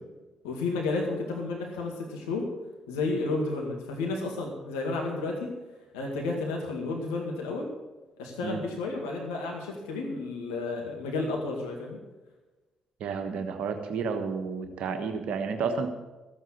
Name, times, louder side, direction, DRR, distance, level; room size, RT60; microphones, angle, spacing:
voice 1, 0.4-2.5 2.9-5.5 5.9-7.7 8.2-12.0, left 3 dB, 80° left, 0 dB, 2.1 m, -32 dB
voice 2, 13.0-15.9, right 5 dB, 65° right, 6 dB, 1.3 m, -31 dB
14.5 x 8.9 x 6.5 m, 1.1 s
hypercardioid pair, 40°, 2 cm